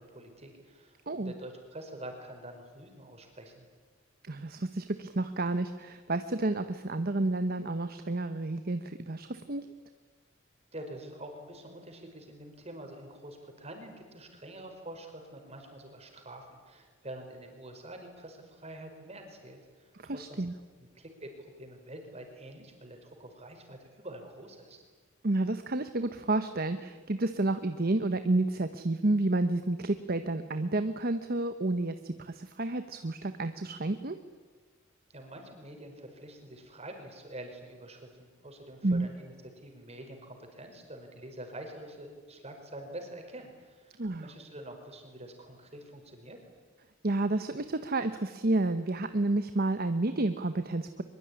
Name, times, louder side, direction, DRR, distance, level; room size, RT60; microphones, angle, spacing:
voice 1, 0.0-3.7 10.7-20.4 20.9-24.8 35.1-46.4, right 1 dB, 30° right, 4 dB, 5.1 m, -46 dB
voice 2, 4.2-9.7 20.0-20.5 25.2-34.2 38.8-39.1 44.0-44.3 47.0-51.0, right 2 dB, 45° right, 10 dB, 1.0 m, -30 dB
23.0 x 22.5 x 9.9 m, 1.4 s
head